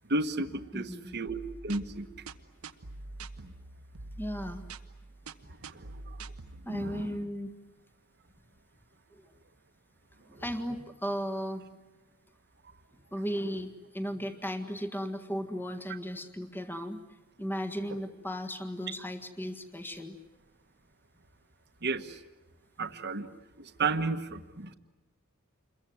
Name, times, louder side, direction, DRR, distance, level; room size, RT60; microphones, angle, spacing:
voice 1, 0.1-2.1 3.4-3.5 5.7-6.2 6.7-7.3 21.8-22.2 22.8-23.3 23.6-24.7, right 3 dB, 50° right, 8 dB, 1.4 m, -33 dB
voice 2, 0.7-1.2 4.2-4.6 6.6-7.5 9.1-9.2 10.2-11.6 13.1-17.0 17.4-20.1, equal, 10° left, 7 dB, 1.7 m, -36 dB
sound 1, 1.3-6.6, right 3 dB, 90° right, 1.2 m, -45 dB
28.0 x 22.5 x 9.5 m, 1.1 s
head